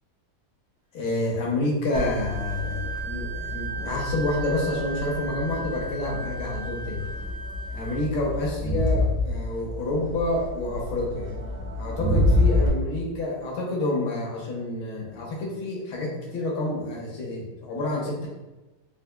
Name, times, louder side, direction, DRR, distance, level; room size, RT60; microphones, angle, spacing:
voice 1, 0.9-7.0 7.7-11.3 11.8-18.3, left 2 dB, 70° left, -2 dB, 1.5 m, -28 dB
Crowd, 1.9-12.7, left 2 dB, 35° right, 0.6 m, -28 dB
Wind instrument woodwind instrument, 1.9-8.1, right 4 dB, 70° right, 0.9 m, -37 dB
4.5 x 2.4 x 2.2 m, 1.1 s
omnidirectional pair, 2.4 m